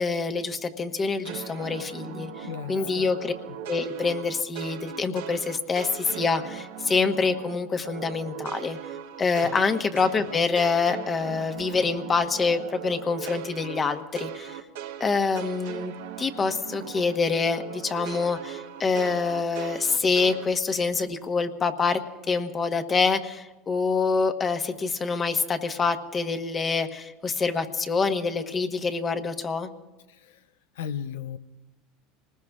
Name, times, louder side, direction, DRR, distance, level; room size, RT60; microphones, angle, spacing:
voice 1, 0.0-3.3 3.7-8.8 9.2-14.6 15.0-22.0 22.3-29.7, left 4 dB, 30° left, 7 dB, 1.2 m, -26 dB
sound 1, 1.2-7.6 7.8-17.2 17.4-20.5, right 10 dB, 80° right, 1.1 m, -39 dB
voice 2, 2.4-3.1 9.4-9.6 30.1-30.4 30.8-31.4, left 8 dB, 80° left, 11 dB, 0.5 m, -35 dB
27.0 x 19.5 x 2.4 m, 1.1 s
hypercardioid pair, 85°, 0 cm